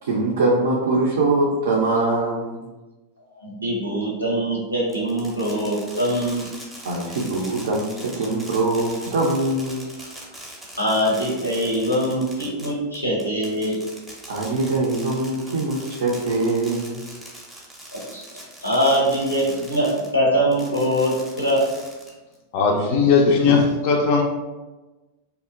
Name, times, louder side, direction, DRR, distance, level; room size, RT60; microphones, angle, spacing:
voice 1, 0.0-2.6 6.8-9.8 14.3-17.0 22.7-23.0, right 2 dB, 60° right, -3 dB, 0.3 m, -23 dB
voice 2, 3.4-6.5 10.8-13.8 17.9-18.2 18.6-21.6, equal, 85° left, -3 dB, 0.6 m, -22 dB
Fireworks, 4.9-20.1 20.5-22.4, right 1 dB, 5° right, 0.6 m, -41 dB
voice 3, 22.5-24.2, left 5 dB, 45° left, 1 dB, 0.3 m, -18 dB
2.7 x 2.1 x 2.3 m, 1.2 s
figure-of-eight pair, 90°, 0 cm